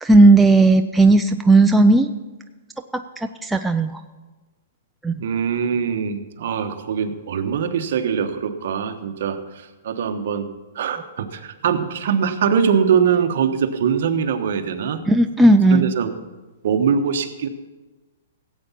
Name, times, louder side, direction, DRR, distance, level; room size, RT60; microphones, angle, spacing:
voice 1, 0.0-2.1 2.9-4.0 5.0-5.2 15.1-15.9, right 2 dB, 5° right, 5 dB, 0.3 m, -15 dB
voice 2, 5.1-10.5 10.7-15.0 15.7-16.1 16.6-17.5, right 7 dB, 55° right, 6 dB, 1.2 m, -22 dB
16.0 x 8.3 x 5.7 m, 1.2 s
hypercardioid pair, 165°, 0 cm